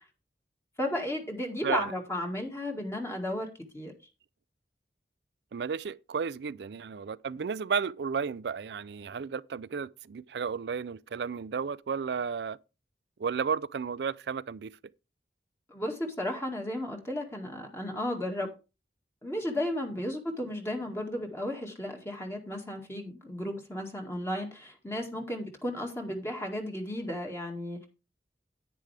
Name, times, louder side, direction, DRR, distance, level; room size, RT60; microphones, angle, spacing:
voice 1, 0.8-3.9 15.7-18.5 19.2-27.9, left 1 dB, 15° left, 1.9 m, -34 dB
voice 2, 5.5-12.6 13.2-14.7, right 6 dB, 70° right, 0.4 m, -33 dB
10.0 x 9.5 x 3.4 m
head